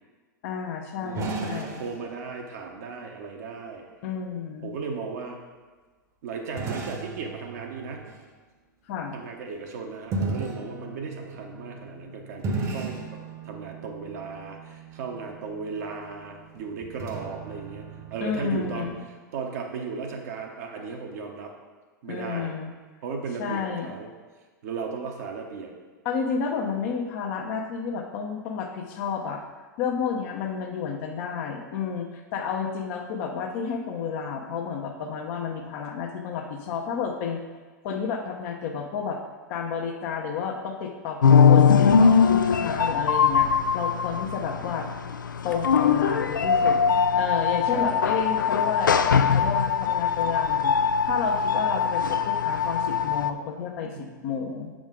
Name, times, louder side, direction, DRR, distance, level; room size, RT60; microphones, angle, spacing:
voice 1, 0.4-1.8 4.0-4.7 8.9-9.2 18.2-19.0 22.0-22.7 23.4-23.9 26.0-29.4 29.8-37.4 37.8-39.2 39.5-44.9 45.4-46.8 47.1-50.7 51.0-54.7, left 6 dB, 45° left, 2 dB, 0.8 m, -31 dB
voice 2, 1.0-3.8 4.6-5.4 6.2-8.0 9.1-13.0 13.4-18.9 19.3-21.5 22.0-22.5 23.0-24.1 24.6-25.7 47.7-48.1 53.9-54.1, right 5 dB, 55° right, 2 dB, 1.0 m, -36 dB
sound 1, 1.1-2.8 6.6-8.2 10.1-19.0, right 3 dB, 30° right, 1.0 m, -36 dB
sound 2, 41.2-53.3, left 6 dB, 80° left, 0.4 m, -21 dB
7.2 x 5.0 x 3.7 m, 1.4 s
figure-of-eight pair, 95°, 10 cm